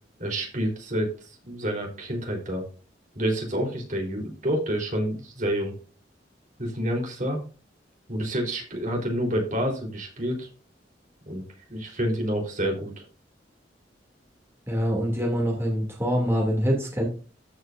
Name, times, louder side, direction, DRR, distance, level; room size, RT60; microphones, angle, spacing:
voice 1, 0.2-1.1 1.4-2.6 3.2-5.7 6.6-7.4 8.1-10.5 11.3-11.4 11.7-13.0, equal, 45° right, 0 dB, 4.0 m, -28 dB
voice 2, 14.7-17.1, equal, 15° right, -2 dB, 2.7 m, -25 dB
14.0 x 6.5 x 2.6 m, 0.36 s
head